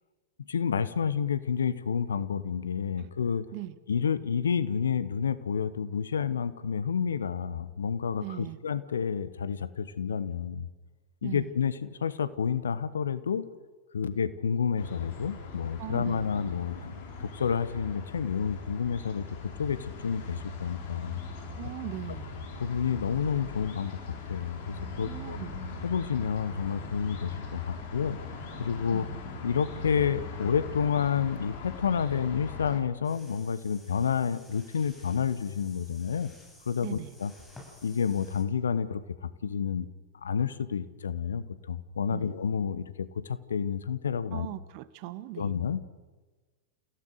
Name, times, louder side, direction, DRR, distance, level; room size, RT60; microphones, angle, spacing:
voice 1, 0.5-3.4 3.9-10.7 11.2-13.4 13.9-21.2 22.6-24.0 24.3-25.4 25.8-28.2 28.6-29.1 29.4-36.3 36.6-37.3 37.8-39.9 40.2-44.5 45.4-45.8, left 7 dB, 70° left, 15 dB, 1.2 m, -30 dB
voice 2, 8.2-8.6 11.2-11.5 15.8-16.3 21.5-22.3 25.0-25.6 28.9-29.2 36.8-37.1 42.1-42.3 44.3-45.5, right 15 dB, 45° right, 16 dB, 1.2 m, -39 dB
sound 1, 14.8-32.8, left 4 dB, 55° left, 4.6 m, -40 dB
sound 2, 33.0-38.4, left 2 dB, 10° left, 7.9 m, -54 dB
30.0 x 16.0 x 6.6 m, 1.3 s
figure-of-eight pair, 95°, 0 cm